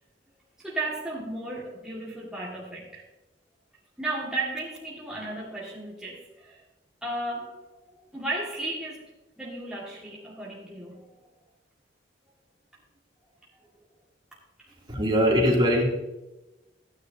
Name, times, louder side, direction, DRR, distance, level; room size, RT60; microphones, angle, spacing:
voice 1, 0.6-3.0 4.0-6.6 7.0-9.1 9.4-11.2 14.6-14.8, right 2 dB, 5° right, -8 dB, 1.8 m, -35 dB
voice 2, 14.9-15.8, equal, 25° right, -4 dB, 2.7 m, -21 dB
15.0 x 9.8 x 2.7 m, 1.0 s
head